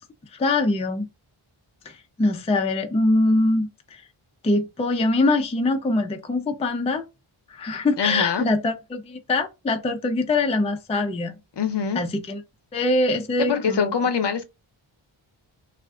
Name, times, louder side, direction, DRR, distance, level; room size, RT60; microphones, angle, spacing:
voice 1, 0.3-1.1 1.9-4.0 4.4-7.1 7.5-11.3 12.0-12.4 12.7-13.9, left 2 dB, 15° left, 0.3 m, -23 dB
voice 2, 8.0-8.5 11.6-12.0 13.4-14.4, left 6 dB, 55° left, 0.6 m, -24 dB
2.5 x 2.3 x 3.3 m
wide cardioid pair, 85°, 50 cm